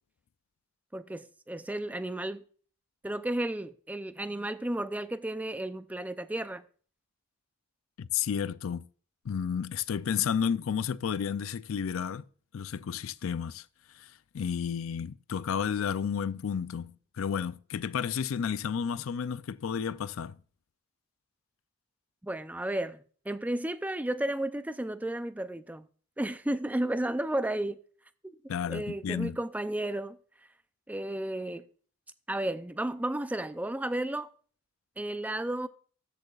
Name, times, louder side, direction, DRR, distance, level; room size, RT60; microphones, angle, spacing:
voice 1, 0.9-2.4 3.0-6.6 22.2-23.0 23.3-25.8 26.2-27.8 28.7-30.2 30.9-31.6 32.3-34.3 35.0-35.7, right 1 dB, 10° right, 0.4 m, -33 dB
voice 2, 8.0-8.9 9.2-12.3 12.5-13.6 13.9-20.4 28.5-29.4, left 7 dB, 80° left, 0.4 m, -32 dB
13.5 x 8.4 x 2.4 m
head